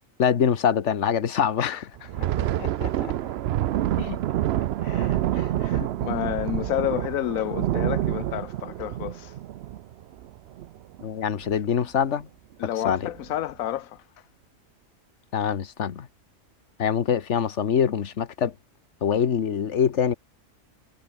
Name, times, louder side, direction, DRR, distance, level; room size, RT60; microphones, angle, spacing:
voice 1, 0.2-1.8 4.0-4.2 11.0-12.3 12.8-13.1 15.3-16.1 16.8-18.5 19.0-20.1, left 8 dB, 60° left, 1.5 m, -24 dB
voice 2, 1.6-3.3 4.8-9.4 12.6-14.0, left 12 dB, 90° left, 1.1 m, -31 dB
Thunder, 2.0-11.0 11.4-11.6 12.0-12.2 12.8-13.3, right 12 dB, 65° right, 0.7 m, -27 dB
omnidirectional pair, 1.4 m